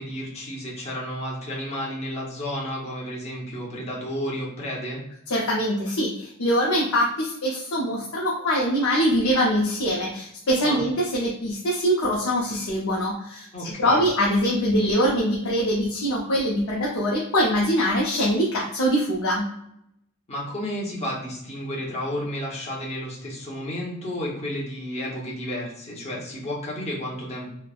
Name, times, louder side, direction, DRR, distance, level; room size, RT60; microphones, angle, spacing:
voice 1, 0.0-5.0 10.6-10.8 13.5-14.0 20.3-27.5, equal, 30° left, -4 dB, 0.9 m, -32 dB
voice 2, 5.3-19.5, equal, 90° left, -4 dB, 0.6 m, -23 dB
3.2 x 2.1 x 2.3 m, 0.75 s
head